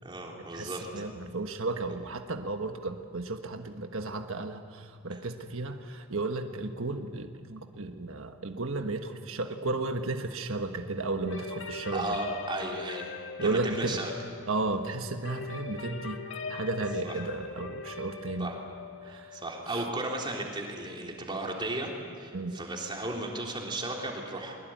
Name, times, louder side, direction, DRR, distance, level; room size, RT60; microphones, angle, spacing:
voice 1, 0.0-0.9 5.1-5.3 11.9-13.1 13.4-14.1 17.0-17.2 18.4-18.6 19.0-21.9 22.2-24.6, right 2 dB, 20° right, -1 dB, 3.6 m, -35 dB
voice 2, 0.5-12.0 13.4-14.0 14.5-16.2 16.5-18.5 19.1-19.3 19.7-19.8 22.3-22.6, right 3 dB, 65° right, 5 dB, 1.4 m, -33 dB
sound 1, 11.3-20.9, left 4 dB, 55° left, 2.2 m, -41 dB
22.5 x 22.0 x 9.3 m, 2.1 s
head